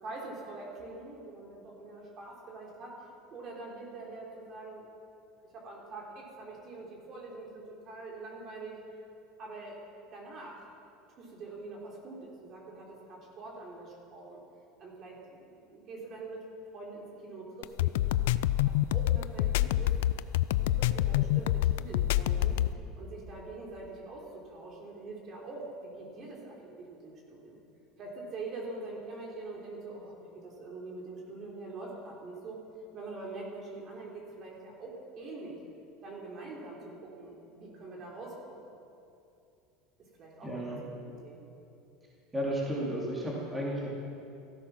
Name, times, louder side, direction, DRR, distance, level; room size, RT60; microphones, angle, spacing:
voice 1, 0.0-4.9 5.5-8.8 9.4-9.8 10.1-10.6 11.2-14.4 14.8-16.4 16.7-17.9 18.6-19.9 20.6-22.6 23.0-27.6 28.0-32.6 32.9-35.6 36.0-38.6 40.2-41.4, right 3 dB, 40° right, -2 dB, 3.6 m, -44 dB
sound 1, 17.6-22.7, left 14 dB, 85° left, 0.4 m, -26 dB
voice 2, 40.4-40.8 42.3-43.9, equal, 15° right, -4 dB, 3.1 m, -33 dB
15.5 x 13.0 x 6.0 m, 2.6 s
supercardioid pair, 125°, 0 cm